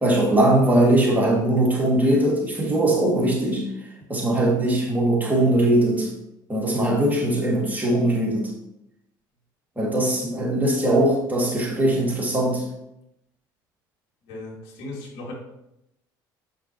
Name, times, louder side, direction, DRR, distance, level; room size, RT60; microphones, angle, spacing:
voice 1, 0.0-3.6 4.1-6.1 6.5-8.5 9.8-12.6, right 1 dB, 15° right, -2 dB, 2.5 m, -20 dB
voice 2, 14.3-15.3, left 2 dB, 70° left, -3 dB, 2.5 m, -37 dB
7.3 x 5.8 x 3.1 m, 0.84 s
hypercardioid pair, 70°, 11 cm